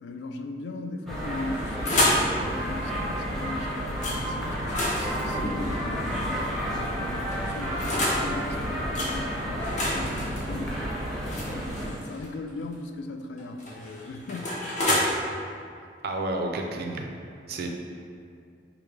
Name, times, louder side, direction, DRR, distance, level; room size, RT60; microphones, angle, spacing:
voice 1, 0.0-4.7 5.1-10.9 11.3-14.6, left 2 dB, 80° left, 6 dB, 0.3 m, -38 dB
sound 1, 1.1-11.9, equal, ahead, 0.7 m, -31 dB
sound 2, 1.3-2.3 4.0-4.2 4.6-6.5 7.3-8.2 9.0-9.1 9.6-12.3 13.4-15.0, left 1 dB, 45° left, 0.7 m, -29 dB
voice 2, 16.0-17.1 17.5-17.7, right 2 dB, 60° right, 2 dB, 0.4 m, -30 dB
4.9 x 2.1 x 3.2 m, 2.3 s
head